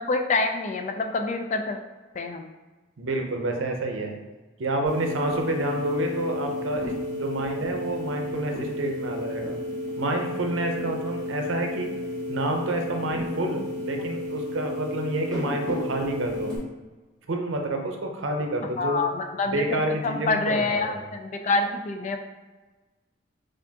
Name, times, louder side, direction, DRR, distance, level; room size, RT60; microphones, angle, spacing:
voice 1, 0.0-1.8 2.1-2.5 18.8-22.2, left 3 dB, 40° left, 5 dB, 0.3 m, -26 dB
voice 2, 3.0-4.2 4.6-9.6 10.0-11.9 12.3-16.5 17.3-19.0 19.4-21.0, right 2 dB, 80° right, 3 dB, 0.6 m, -29 dB
sound 1, 4.9-16.6, left 1 dB, 5° left, 1.3 m, -32 dB
4.4 x 2.5 x 2.8 m, 1.2 s
head